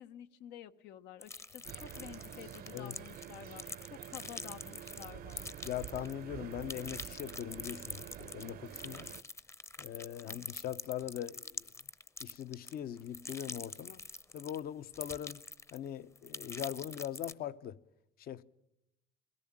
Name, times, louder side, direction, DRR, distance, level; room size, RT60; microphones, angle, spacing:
voice 1, 0.0-5.5 10.2-10.5, left 10 dB, 90° left, 1.1 m, -51 dB
sound 1, 1.2-6.2 6.5-14.6 14.9-15.9 16.2-17.3, left 3 dB, 15° left, 0.7 m, -45 dB
sound 2, 1.6-9.2, right 11 dB, 60° right, 0.8 m, -48 dB
voice 2, 5.6-9.1 9.8-11.7 12.2-14.0 14.3-15.4 15.7-17.8 18.2-18.4, left 11 dB, 65° left, 0.9 m, -41 dB
22.0 x 18.0 x 8.8 m
cardioid pair, 110°, 17 cm